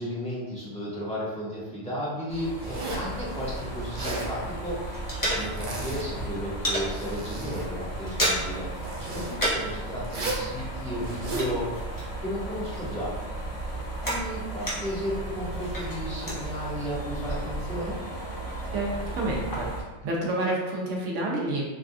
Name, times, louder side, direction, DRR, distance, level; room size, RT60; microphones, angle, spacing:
voice 1, 0.0-8.7 9.0-11.7 12.2-13.1 14.0-18.0, equal, 5° left, -11 dB, 1.2 m, -34 dB
sound 1, 2.3-19.8, right 2 dB, 85° left, 1.3 m, -35 dB
Zipper (clothing), 2.6-3.1 3.8-4.3 5.3-6.2 6.7-7.7 8.8-9.3 10.0-10.5 11.0-11.5, right 2 dB, 55° right, 0.6 m, -35 dB
sound 2, 3.0-4.5 4.7-5.9 6.1-6.9 7.3-7.5 7.8-8.7 8.9-9.8 10.0-12.4 12.7-15.1 15.5-16.4, equal, 25° left, 0.5 m, -32 dB
voice 2, 18.7-19.7 20.0-21.6, right 1 dB, 85° right, -2 dB, 1.0 m, -28 dB
3.3 x 2.5 x 2.3 m, 1.1 s
omnidirectional pair, 1.2 m